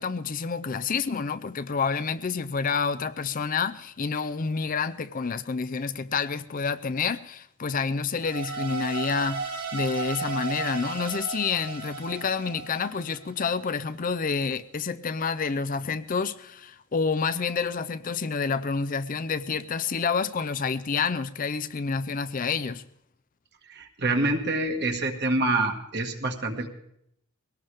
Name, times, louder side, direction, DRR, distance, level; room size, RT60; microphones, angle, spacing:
voice 1, 0.0-22.8, left 5 dB, 40° left, 0.5 m, -28 dB
sound 1, 8.2-13.4, right 5 dB, 90° right, 4.1 m, -34 dB
voice 2, 23.7-26.7, right 2 dB, 50° right, 1.9 m, -26 dB
21.5 x 17.5 x 3.5 m
head